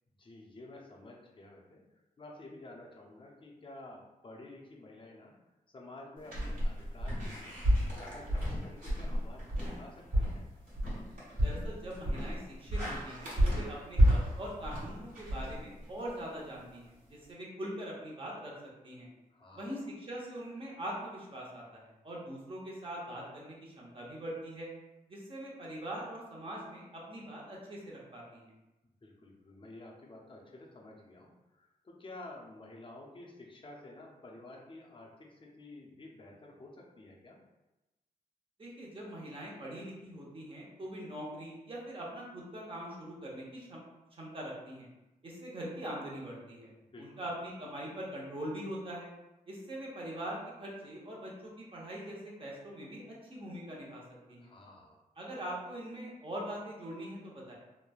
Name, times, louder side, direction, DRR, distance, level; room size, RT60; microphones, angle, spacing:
voice 1, 0.2-5.3 5.7-7.6 8.0-10.4 19.3-19.8 29.0-37.4 46.8-47.3 54.3-55.0, left 2 dB, 35° left, -1 dB, 0.5 m, -51 dB
sound 1, 6.2-16.1, equal, 70° right, 1.3 m, -31 dB
voice 2, 11.4-18.5 18.8-19.1 19.5-24.7 25.1-28.5 38.6-43.8 44.2-44.9 45.2-46.7 47.0-49.1 49.5-54.0 54.3-54.5 55.2-57.5, right 1 dB, 35° right, -4 dB, 0.8 m, -42 dB
3.1 x 2.1 x 2.3 m, 1.0 s
wide cardioid pair, 95°, 15 cm